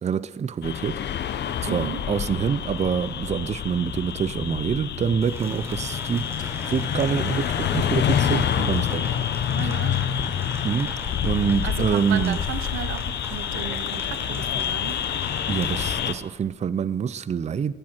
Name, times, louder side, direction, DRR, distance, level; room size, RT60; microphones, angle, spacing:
voice 1, 0.0-1.0 1.6-6.3 6.7-9.1 9.4-9.7 10.6-10.9 11.2-12.4 15.5-17.7, right 7 dB, 35° right, 0.5 m, -26 dB
sound 1, 0.6-16.1, left 9 dB, 60° left, 0.8 m, -27 dB
voice 2, 1.6-2.0 9.5-10.0 11.6-15.1, right 12 dB, 85° right, 0.7 m, -34 dB
Rain, 5.2-16.1, right 1 dB, 15° right, 4.3 m, -40 dB
Whispering, 6.4-12.8, left 5 dB, 40° left, 1.1 m, -45 dB
14.0 x 13.5 x 4.4 m
cardioid pair, 90°, 20 cm